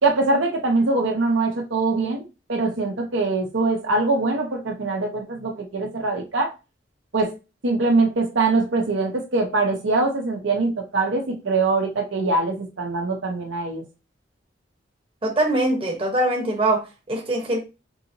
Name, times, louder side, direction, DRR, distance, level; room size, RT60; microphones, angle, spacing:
voice 1, 0.0-6.5 7.1-7.4 7.6-13.8, right 3 dB, 75° right, 2 dB, 0.8 m, -23 dB
voice 2, 15.2-17.6, right 1 dB, 30° right, 0 dB, 1.0 m, -23 dB
4.7 x 2.9 x 2.7 m, 0.29 s
head